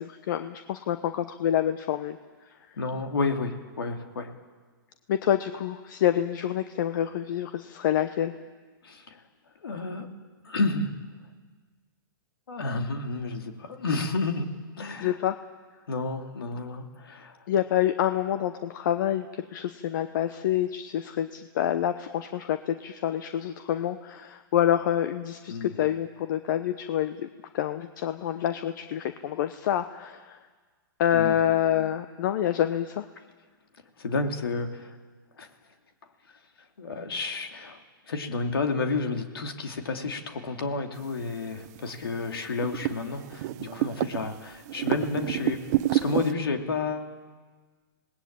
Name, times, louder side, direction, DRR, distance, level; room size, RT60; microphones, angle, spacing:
voice 1, 0.0-2.2 2.7-2.8 5.1-8.3 15.0-15.3 17.5-27.3 27.5-30.4 31.0-33.0, left 11 dB, 60° left, 10 dB, 1.0 m, -27 dB
voice 2, 2.8-4.3 8.8-9.2 9.6-10.1 10.4-10.9 12.5-14.5 14.8-15.1 15.9-17.4 25.5-25.8 31.1-31.4 34.0-35.0 35.4-35.5 36.8-45.6 45.9-47.1, left 3 dB, 90° left, 5 dB, 2.7 m, -31 dB
sound 1, 41.2-41.3 41.5-42.0 42.4-44.3 44.7-46.3, right 15 dB, 45° right, 0.9 m, -28 dB
27.0 x 19.0 x 8.7 m, 1.4 s
hypercardioid pair, 135°, 12 cm